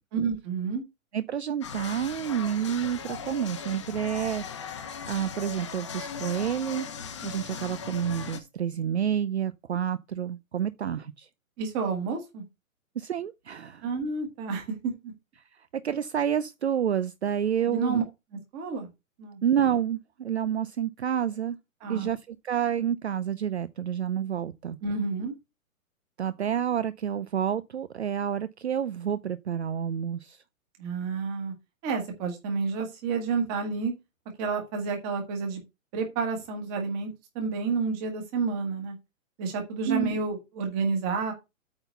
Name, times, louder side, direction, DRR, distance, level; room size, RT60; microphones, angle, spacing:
voice 1, 0.1-0.8 11.6-12.4 13.8-15.1 17.7-18.0 18.5-18.9 19.2-19.4 21.8-22.1 24.8-25.3 30.8-31.5 31.8-33.9 34.4-35.6 35.9-38.9 39.4-41.3, right 4 dB, 15° right, 1.5 m, -30 dB
voice 2, 1.1-6.9 7.2-11.3 13.0-13.9 15.7-18.0 19.4-21.6 21.9-24.8 26.2-30.4 39.9-40.1, right 9 dB, 55° right, 0.6 m, -29 dB
sound 1, 1.6-8.4, left 6 dB, 20° left, 1.0 m, -38 dB
8.8 x 3.9 x 6.8 m
hypercardioid pair, 175°, 41 cm